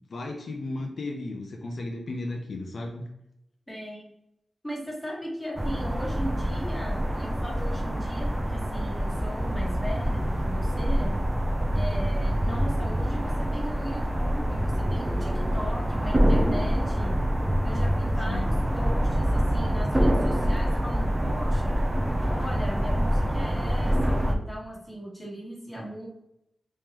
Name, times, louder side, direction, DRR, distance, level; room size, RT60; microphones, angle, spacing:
voice 1, 0.1-3.0 18.2-18.5, left 2 dB, 65° left, 1 dB, 0.5 m, -34 dB
voice 2, 3.7-4.1 4.6-11.1 11.7-17.1 17.6-21.8 22.3-26.1, equal, 10° left, -4 dB, 1.2 m, -38 dB
sound 1, 5.6-24.4, equal, 15° right, 0.4 m, -26 dB
3.6 x 3.2 x 2.9 m, 0.81 s
wide cardioid pair, 140°, 0 cm